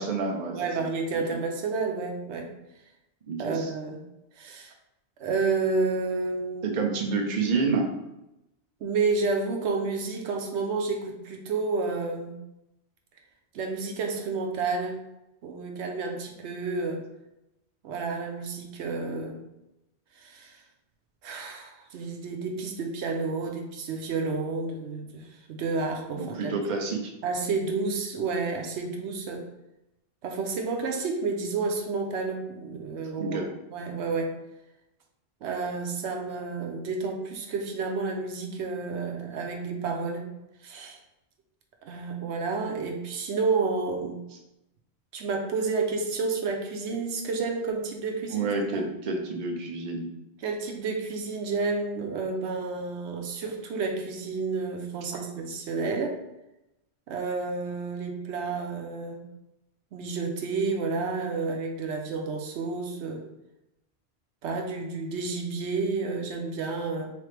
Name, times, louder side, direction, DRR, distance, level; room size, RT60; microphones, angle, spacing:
voice 1, 0.0-0.9 3.3-3.7 6.6-7.9 26.1-27.1 33.2-33.5 48.3-50.1 55.1-55.2, right 4 dB, 50° right, 2 dB, 0.7 m, -29 dB
voice 2, 0.5-2.5 3.4-4.0 4.4-4.7 5.2-6.8 8.8-12.3 13.5-15.0 15.4-17.0 17.8-19.4 20.2-20.6 21.2-26.5 27.2-29.4 30.2-34.4 35.4-40.3 40.6-41.0 41.8-44.2 45.1-48.5 48.7-48.9 50.4-56.2 57.1-59.2 59.9-63.2 64.4-67.1, right 4 dB, 85° right, 3 dB, 1.0 m, -30 dB
3.8 x 3.1 x 3.3 m, 0.90 s
omnidirectional pair, 1.1 m